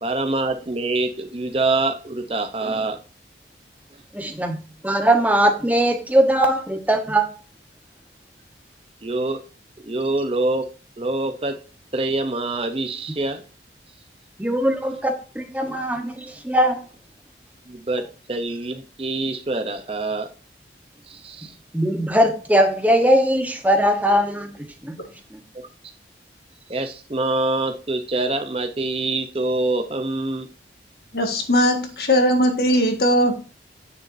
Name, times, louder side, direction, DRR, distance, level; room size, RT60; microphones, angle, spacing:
voice 1, 0.0-3.0 9.0-9.4 9.8-10.7 11.0-11.6 11.9-13.4 17.7-20.3 21.0-21.6 25.5-25.7 26.7-30.5, right 2 dB, 30° right, 6 dB, 0.8 m, -25 dB
voice 2, 4.1-7.3 14.4-16.8 21.7-25.0 25.3-25.4, right 1 dB, 10° right, 5 dB, 1.1 m, -20 dB
voice 3, 31.1-33.3, equal, 60° left, 4 dB, 1.8 m, -19 dB
9.5 x 6.6 x 2.7 m, 0.36 s
head